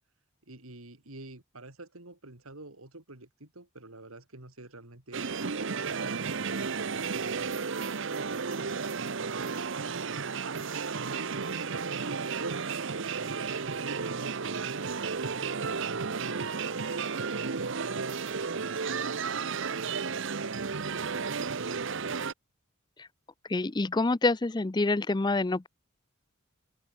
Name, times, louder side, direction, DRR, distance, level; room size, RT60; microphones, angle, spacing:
voice 1, 0.5-5.3 5.9-7.6 7.9-10.3 10.9-16.5 17.3-21.9, right 2 dB, 80° right, 3.5 m, -47 dB
sound 1, 5.1-22.3, right 5 dB, 60° right, 0.9 m, -33 dB
voice 2, 23.5-25.7, left 2 dB, 20° left, 0.5 m, -26 dB
open air
head